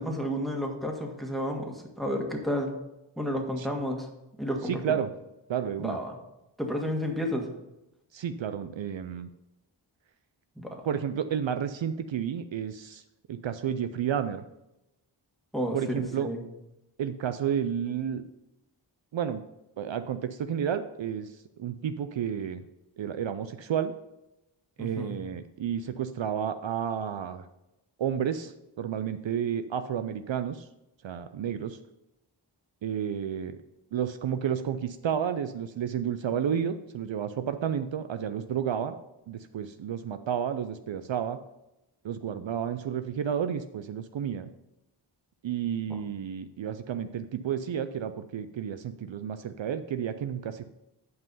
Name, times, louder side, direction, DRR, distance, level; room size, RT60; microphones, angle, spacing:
voice 1, 0.0-2.8 3.2-4.1 4.4-5.0 5.8-6.1 6.6-7.5 10.6-10.8 15.5-16.4 24.8-25.1, equal, ahead, 1 dB, 1.6 m, -31 dB
voice 2, 4.6-5.1 5.5-6.0 8.1-9.3 10.9-13.0 13.3-14.4 15.7-16.3 17.0-18.2 19.1-19.4 19.8-22.6 23.0-23.9 24.8-27.5 28.0-30.7 31.0-31.8 32.8-33.6 33.9-39.0 39.3-41.4 42.0-44.5 45.4-50.7, right 8 dB, 70° right, 10 dB, 0.5 m, -31 dB
8.0 x 5.5 x 5.5 m, 0.93 s
wide cardioid pair, 50°, 47 cm